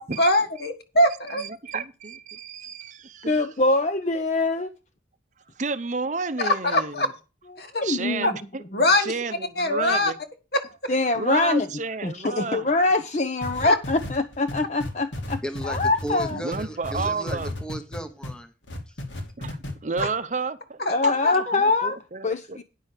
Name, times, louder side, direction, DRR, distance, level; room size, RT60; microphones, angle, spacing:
voice 1, 0.0-1.4 6.4-7.1 7.6-7.8 8.2-8.3 8.7-9.1 9.6-10.1 10.5-10.9 13.6-13.8 20.0-20.1 20.8-21.5, left 1 dB, 55° left, 1.7 m, -23 dB
voice 2, 1.3-3.5 5.6-7.0 7.8-8.6 9.0-10.2 11.1-12.7 16.3-17.5 19.4-20.8 21.3-22.6, right 4 dB, 40° right, 0.6 m, -31 dB
voice 3, 3.3-4.7 7.5-8.3 10.9-11.7 12.0-16.4 20.9-22.0 22.2-22.6, left 2 dB, 40° left, 0.6 m, -24 dB
sound 1, 13.4-18.3 18.7-19.7 20.0-20.1, left 1 dB, 80° left, 2.7 m, -33 dB
voice 4, 15.4-18.5 18.9-19.0, right 1 dB, 5° left, 1.0 m, -35 dB
9.8 x 6.1 x 6.6 m
head